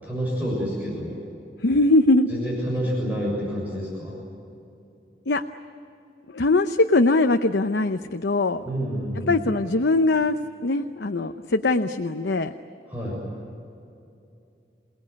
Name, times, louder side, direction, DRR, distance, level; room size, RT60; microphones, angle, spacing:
voice 1, 0.0-1.2 2.3-4.2 8.6-9.3 12.9-13.2, equal, 10° right, -4 dB, 7.1 m, -28 dB
voice 2, 1.6-2.3 5.3-5.4 6.3-8.6 9.2-12.5, left 2 dB, 85° left, 7 dB, 0.8 m, -21 dB
28.5 x 19.0 x 9.7 m, 2.6 s
head